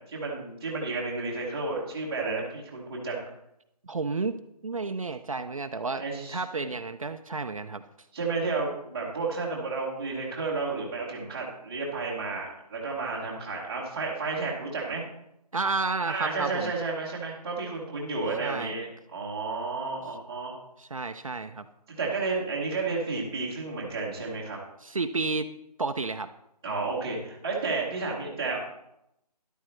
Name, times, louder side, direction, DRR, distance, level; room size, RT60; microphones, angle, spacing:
voice 1, 0.1-3.2 5.9-6.7 8.1-15.0 16.1-20.5 22.0-24.6 26.6-28.6, right 3 dB, 5° right, -8 dB, 1.0 m, -32 dB
voice 2, 3.8-4.4 4.6-6.0 6.3-7.8 15.5-16.7 18.4-18.8 20.8-21.7 24.8-25.5 25.8-26.3, right 3 dB, 55° right, 8 dB, 0.6 m, -31 dB
13.0 x 11.0 x 3.2 m, 0.81 s
figure-of-eight pair, 175°, 21 cm